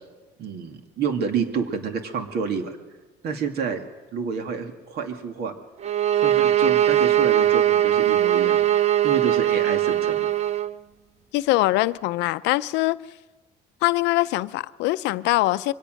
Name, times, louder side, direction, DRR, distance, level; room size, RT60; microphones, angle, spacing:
voice 1, 0.4-2.8 3.2-3.8 4.1-5.5 6.2-8.7 9.0-10.3, right 5 dB, 65° right, 2.4 m, -29 dB
sound 1, 5.8-10.7, right 11 dB, 40° right, 0.6 m, -20 dB
voice 2, 11.3-13.0 13.8-15.7, left 19 dB, 90° left, 0.6 m, -22 dB
23.5 x 17.0 x 6.4 m
cardioid pair, 120°, 18 cm